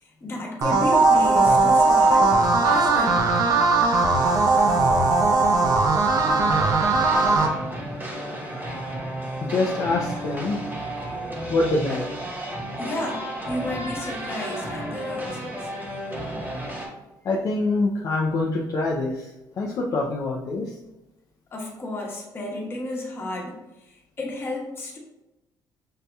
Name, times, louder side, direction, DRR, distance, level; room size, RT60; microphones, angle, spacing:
voice 1, 0.0-2.3 2.6-3.2 12.8-15.7 21.5-25.0, left 1 dB, 30° left, -3 dB, 1.1 m, -32 dB
sound 1, 0.6-7.5, right 3 dB, 50° right, 0.6 m, -19 dB
sound 2, 6.1-16.9, right 1 dB, 25° right, 1.0 m, -33 dB
voice 2, 9.5-10.6 11.5-12.1 17.2-19.3 19.6-20.7, left 2 dB, 50° left, -2 dB, 0.5 m, -25 dB
6.4 x 2.8 x 2.3 m, 0.96 s
cardioid pair, 140°, 8 cm